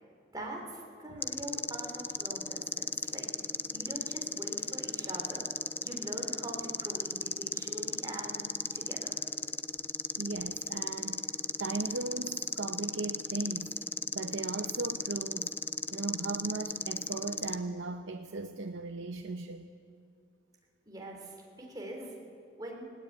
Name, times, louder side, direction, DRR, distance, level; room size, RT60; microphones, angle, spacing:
voice 1, 0.3-3.3 3.7-5.5 5.8-8.4 8.7-9.2 20.9-21.4 21.7-22.1 22.6-22.9, right 1 dB, 20° right, 0 dB, 3.4 m, -43 dB
sound 1, 1.2-17.6, left 4 dB, 10° left, 0.4 m, -36 dB
voice 2, 10.2-11.3 11.6-13.8 14.1-15.5 15.9-19.7 21.6-21.7, right 3 dB, 75° right, 6 dB, 0.8 m, -37 dB
19.5 x 18.0 x 8.5 m, 2.4 s
head